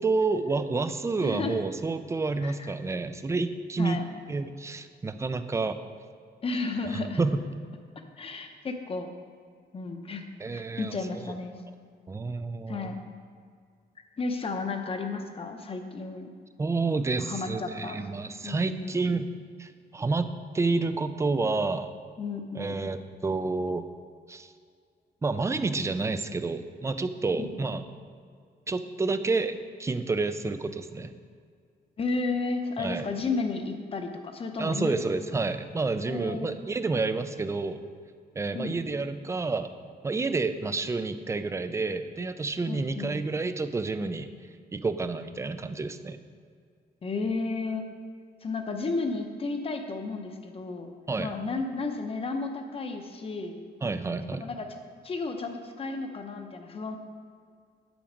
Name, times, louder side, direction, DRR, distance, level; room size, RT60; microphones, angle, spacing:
voice 1, 0.0-4.0 4.3-5.8 6.8-7.4 10.4-11.3 12.1-12.9 16.6-19.3 19.6-20.3 20.5-21.9 22.5-23.9 24.3-24.5 25.2-27.8 28.7-31.1 32.8-33.1 34.6-37.8 38.4-39.7 40.0-44.3 44.7-46.2 51.1-51.3 53.8-54.5, right 3 dB, 15° right, 10 dB, 0.4 m, -29 dB
voice 2, 1.2-1.6 2.4-2.7 3.8-4.0 6.4-7.2 8.2-9.1 9.7-10.2 10.5-11.6 12.7-13.0 14.2-16.3 17.2-18.0 18.4-19.0 22.2-22.8 27.4-27.5 32.0-35.2 36.1-36.6 38.5-38.8 42.7-43.2 47.0-47.8 48.4-50.9 51.2-53.6 54.4-54.7 55.0-57.0, left 3 dB, 35° left, 5 dB, 0.8 m, -33 dB
8.8 x 8.3 x 5.1 m, 2.1 s
wide cardioid pair, 165°, 18 cm